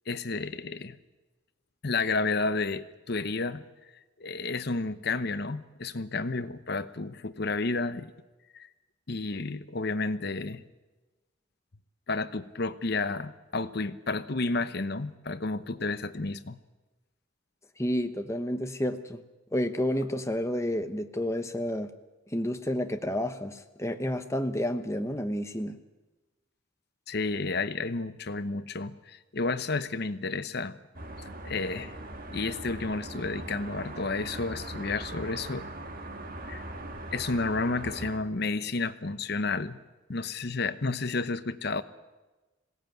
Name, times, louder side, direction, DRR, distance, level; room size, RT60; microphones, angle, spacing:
voice 1, 0.1-1.0 1.8-3.6 4.2-8.1 8.5-8.7 9.1-10.6 12.1-16.6 27.1-30.8 31.4-31.9 32.3-35.7 36.5-36.6 37.1-39.8 40.1-41.8, left 3 dB, 50° left, 13 dB, 0.8 m, -31 dB
voice 2, 17.8-19.2 19.5-21.9 22.3-25.8, left 1 dB, 15° left, 7 dB, 1.0 m, -30 dB
sound 1, 30.9-38.2, right 1 dB, 45° right, 1.9 m, -40 dB
20.5 x 17.0 x 9.2 m, 1.2 s
head